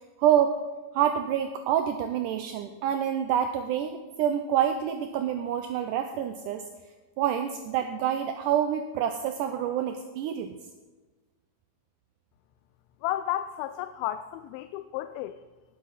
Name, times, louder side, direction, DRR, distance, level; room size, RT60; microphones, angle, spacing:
voice 1, 0.2-0.5 0.9-6.6 7.2-10.5, right 9 dB, 80° right, 7 dB, 1.9 m, -27 dB
voice 2, 13.0-15.4, left 13 dB, 85° left, 11 dB, 2.4 m, -32 dB
19.0 x 7.7 x 4.1 m, 1.3 s
omnidirectional pair, 4.2 m